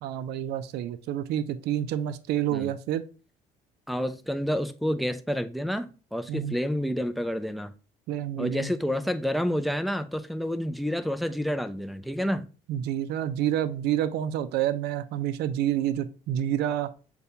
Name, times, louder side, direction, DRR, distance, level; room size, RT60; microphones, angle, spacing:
voice 1, 0.0-3.1 6.3-6.6 8.1-8.7 12.7-16.9, right 11 dB, 75° right, 0.4 m, -28 dB
voice 2, 3.9-7.7 8.4-12.5, equal, ahead, 0.3 m, -29 dB
6.7 x 2.3 x 2.7 m
cardioid pair, 110°, 17 cm